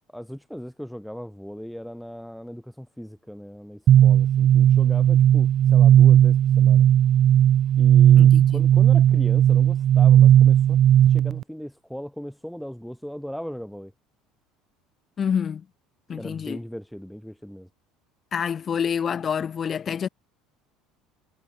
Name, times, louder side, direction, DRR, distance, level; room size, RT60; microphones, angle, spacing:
voice 1, 0.1-6.9 7.8-10.8 11.1-13.9 16.1-17.7, equal, ahead, 3.6 m, -38 dB
sound 1, 3.9-11.4, right 11 dB, 40° right, 0.5 m, -16 dB
voice 2, 8.2-8.6 15.2-15.6 16.1-16.6 18.3-20.1, left 7 dB, 30° left, 3.3 m, -27 dB
cardioid pair, 140°, 0 cm